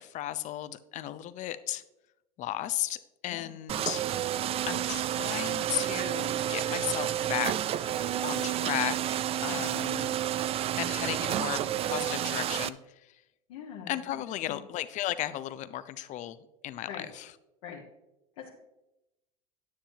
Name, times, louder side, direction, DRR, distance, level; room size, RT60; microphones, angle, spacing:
voice 1, 0.0-1.8 2.4-4.0 4.6-7.9 8.2-9.0 9.4-10.2 10.8-13.2 13.9-16.4 16.6-17.3, left 13 dB, 45° left, 14 dB, 0.6 m, -35 dB
sound 1, 3.7-12.7, right 11 dB, 35° right, 0.4 m, -30 dB
voice 2, 13.5-14.6 16.9-17.1 17.6-17.8 18.4-18.6, left 8 dB, 70° left, -3 dB, 1.5 m, -43 dB
9.8 x 9.5 x 2.9 m, 0.93 s
hypercardioid pair, 85°, 18 cm